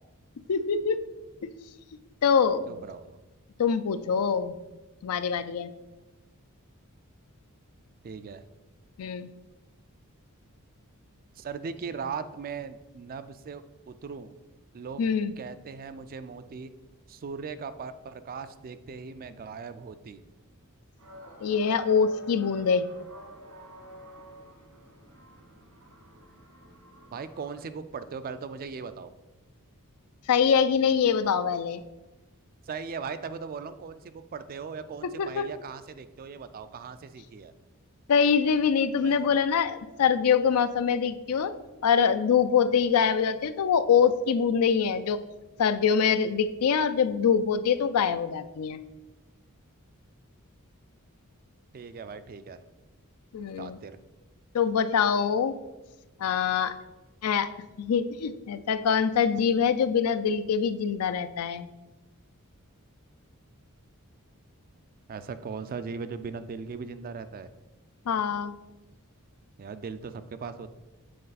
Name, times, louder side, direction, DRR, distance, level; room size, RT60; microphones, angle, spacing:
voice 1, 0.5-1.0 2.2-2.6 3.6-4.5 5.0-5.7 9.0-9.3 15.0-15.3 21.4-22.9 30.3-31.8 35.0-35.5 38.1-41.5 41.8-45.2 45.6-48.8 53.3-53.8 54.5-55.5 56.2-56.8 57.2-57.5 57.8-61.7 68.1-68.5, left 6 dB, 75° left, 12 dB, 0.4 m, -24 dB
voice 2, 2.7-3.2 8.0-8.4 11.4-14.3 14.7-15.0 15.4-16.7 17.1-20.2 27.1-29.1 32.6-37.5 39.0-39.2 51.7-52.6 53.6-54.0 65.1-67.5 69.6-70.7, right 5 dB, 40° right, 12 dB, 0.3 m, -39 dB
call to prayer, 21.0-27.6, right 1 dB, 80° right, 1.8 m, -48 dB
7.7 x 4.2 x 4.0 m, 1.1 s
head